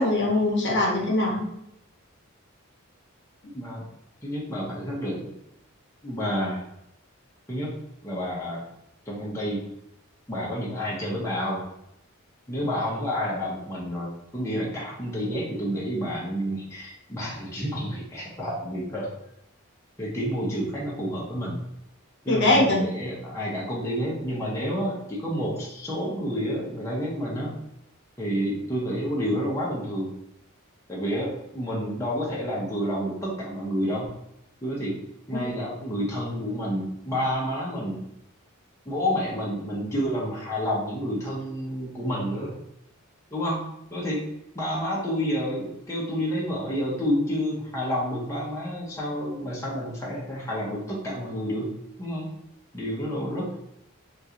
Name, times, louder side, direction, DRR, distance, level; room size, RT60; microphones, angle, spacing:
voice 1, 0.0-1.4 22.3-22.8 35.3-35.4, left 2 dB, 55° left, -1 dB, 0.8 m, -22 dB
voice 2, 3.5-3.9 4.2-5.4 6.0-6.6 7.5-7.7 8.0-8.6 9.1-9.6 10.3-11.6 12.5-19.1 20.0-21.6 22.2-27.5 28.2-30.1 30.9-34.1 34.6-34.9 35.3-38.0 38.8-42.5 43.3-43.6 43.9-44.2 44.5-51.7 52.0-52.3 52.7-53.6, equal, 15° left, -6 dB, 0.7 m, -29 dB
3.7 x 2.4 x 2.8 m, 0.80 s
head